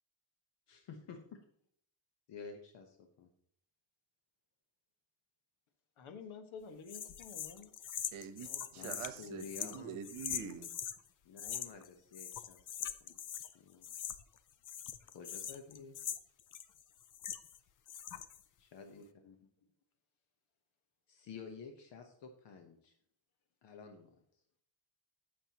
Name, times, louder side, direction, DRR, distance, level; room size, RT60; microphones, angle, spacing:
voice 1, 0.7-1.4 2.3-3.3 8.7-10.0 11.2-13.9 15.1-16.0 18.6-19.4 21.1-22.9 23.6-24.1, left 5 dB, 60° left, 1.1 m, -51 dB
voice 2, 6.0-7.7 8.5-9.2, left 5 dB, 75° left, 1.5 m, -51 dB
sound 1, 6.9-11.0 11.4-11.9 12.1-13.5 13.8-14.4 14.6-17.6 17.9-18.4, left 9 dB, 40° left, 0.5 m, -42 dB
voice 3, 8.1-10.7, right 8 dB, 75° right, 1.1 m, -45 dB
15.0 x 6.7 x 2.9 m
cardioid pair, 175°, 49 cm